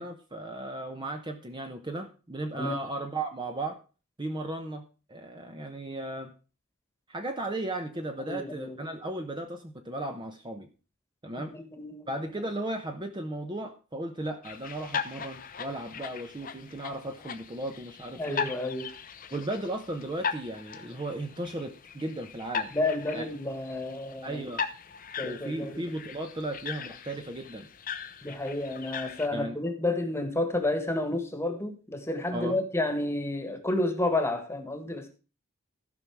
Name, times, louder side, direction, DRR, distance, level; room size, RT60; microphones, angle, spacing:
voice 1, 0.0-3.8 4.2-4.8 5.1-6.3 7.1-10.7 11.2-11.5 12.1-18.5 19.3-22.7 23.1-23.3 24.2-24.6 25.2-27.7 29.3-29.6 32.3-32.6, right 1 dB, 20° right, 0.9 m, -35 dB
voice 2, 8.3-8.8 11.4-12.1 18.2-18.9 22.7-24.4 25.2-25.8 28.2-35.1, left 2 dB, 15° left, 1.5 m, -30 dB
sound 1, 14.4-29.3, left 6 dB, 40° left, 0.7 m, -39 dB
14.5 x 5.7 x 4.7 m
head